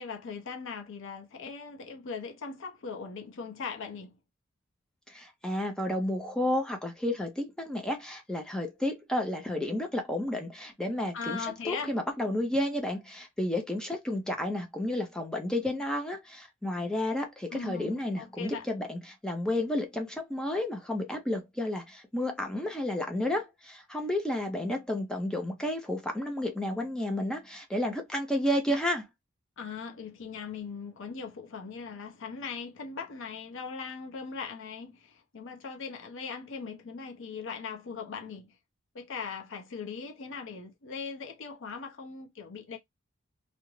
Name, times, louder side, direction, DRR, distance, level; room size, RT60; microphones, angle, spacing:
voice 1, 0.0-4.2 11.1-12.0 17.5-18.7 29.6-38.6 38.9-42.8, left 5 dB, 65° left, 0.6 m, -39 dB
voice 2, 5.1-29.1, left 1 dB, 5° left, 0.5 m, -31 dB
2.4 x 2.1 x 3.0 m
head